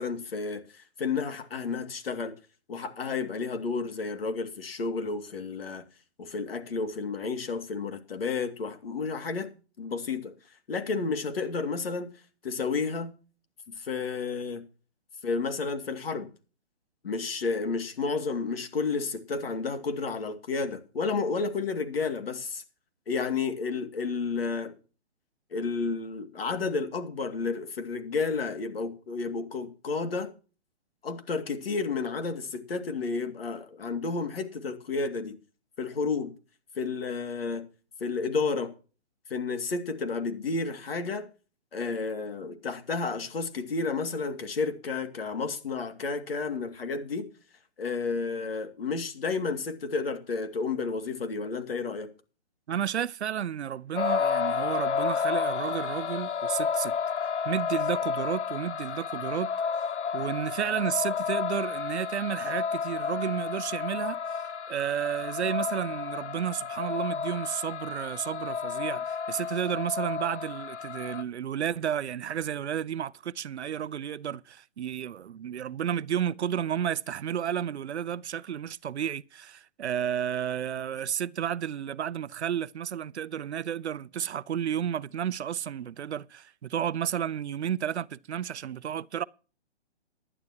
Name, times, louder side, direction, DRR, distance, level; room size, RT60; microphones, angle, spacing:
voice 1, 0.0-2.3 2.7-5.8 6.2-9.5 9.8-10.3 10.7-12.1 12.4-13.1 13.8-14.6 15.2-16.3 17.0-22.6 23.1-24.7 25.5-30.3 31.0-35.4 35.8-36.3 36.8-37.7 38.0-38.7 39.3-41.3 41.7-47.3 47.8-52.1, left 4 dB, 55° left, 2.4 m, -31 dB
voice 2, 52.7-56.9 57.4-59.5 59.8-59.9 60.1-89.2, right 9 dB, 75° right, 0.7 m, -32 dB
sound 1, 54.0-71.2, left 6 dB, 85° left, 1.1 m, -31 dB
17.5 x 11.0 x 2.9 m
hypercardioid pair, 180°, 34 cm